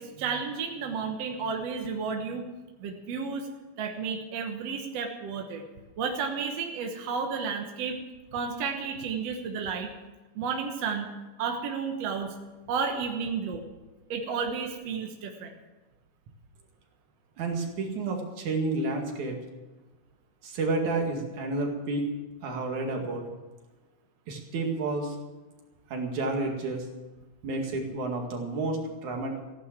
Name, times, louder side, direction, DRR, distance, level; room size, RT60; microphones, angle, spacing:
voice 1, 0.0-2.4 2.8-3.5 3.8-5.6 6.0-8.0 8.3-9.9 10.4-11.1 11.4-12.3 12.7-13.6 14.1-15.5, right 5 dB, 65° right, 3 dB, 2.3 m, -32 dB
voice 2, 17.4-19.4 20.4-22.1 22.4-23.2 24.3-25.2 25.9-26.9 27.4-29.4, right 3 dB, 80° right, 2 dB, 3.6 m, -30 dB
15.0 x 11.0 x 7.4 m, 1.2 s
omnidirectional pair, 3.3 m